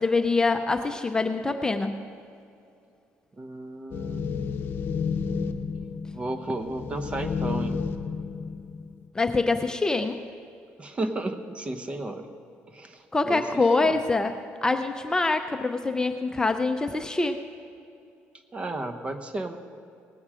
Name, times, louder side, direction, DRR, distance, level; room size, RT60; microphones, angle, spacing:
voice 1, 0.0-2.0 9.1-10.2 13.1-17.4, left 3 dB, 15° left, 6 dB, 0.6 m, -25 dB
voice 2, 3.4-4.2 6.1-7.8 10.8-12.3 12.7-14.0 18.5-19.6, right 2 dB, 25° right, 7 dB, 1.0 m, -33 dB
sound 1, 3.9-9.0, left 5 dB, 50° left, 0.7 m, -31 dB
18.5 x 8.7 x 4.9 m, 2.5 s
cardioid pair, 110°, 5 cm